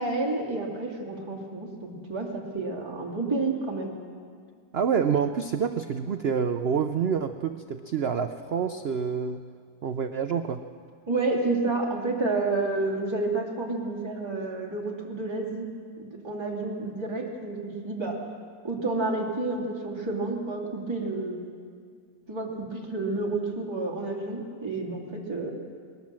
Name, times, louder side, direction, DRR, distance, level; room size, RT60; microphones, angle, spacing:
voice 1, 0.0-4.0 11.1-15.7 16.0-18.2 18.6-21.4 22.3-25.5, right 3 dB, 15° right, -2 dB, 2.4 m, -30 dB
voice 2, 4.7-9.4 9.8-10.6, right 7 dB, 90° right, 9 dB, 0.5 m, -27 dB
20.5 x 19.0 x 7.5 m, 2.1 s
omnidirectional pair, 1.9 m